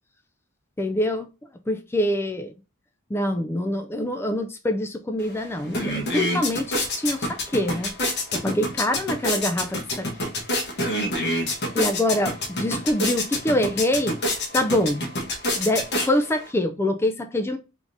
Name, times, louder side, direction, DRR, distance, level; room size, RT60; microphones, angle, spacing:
voice 1, 0.8-1.3 1.7-2.5 3.1-7.9 8.3-10.3 11.7-14.2 14.5-15.0 15.5-17.6, left 1 dB, 10° left, 0.3 m, -25 dB
sound 1, 5.2-5.3 5.6-16.5, left 1 dB, 50° left, 1.1 m, -28 dB
3.6 x 2.7 x 4.6 m
head